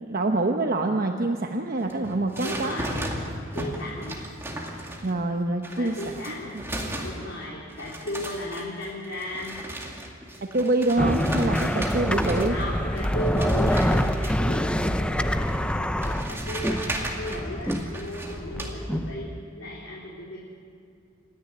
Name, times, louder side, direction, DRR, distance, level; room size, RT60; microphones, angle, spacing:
voice 1, 0.0-2.8 5.0-6.0 6.2-6.6 10.5-12.6, right 2 dB, 45° right, 4 dB, 0.9 m, -25 dB
sound 1, 1.8-5.2 5.6-7.4 7.7-12.6 13.0-14.6 15.5-15.6 16.0-18.7, right 1 dB, 15° right, 2.3 m, -36 dB
voice 2, 2.4-3.3 3.5-4.2 5.7-6.5 7.0-9.6 12.5-20.4, equal, 70° left, -5 dB, 3.6 m, -35 dB
sound 2, 11.0-19.4, equal, 5° left, 0.6 m, -26 dB
27.5 x 10.5 x 9.3 m, 2.4 s
head